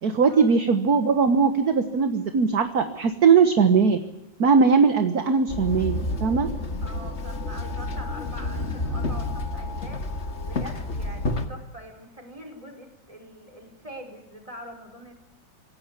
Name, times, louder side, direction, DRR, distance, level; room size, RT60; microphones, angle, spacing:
voice 1, 0.0-4.0 4.4-6.5, right 5 dB, 55° right, 9 dB, 1.8 m, -20 dB
Walk footsteps / Chatter / Hiss, 5.5-11.5, left 2 dB, 35° left, 2.2 m, -30 dB
voice 2, 6.8-15.1, equal, 15° right, 4 dB, 5.3 m, -44 dB
26.5 x 16.5 x 9.8 m, 0.91 s
omnidirectional pair, 2.1 m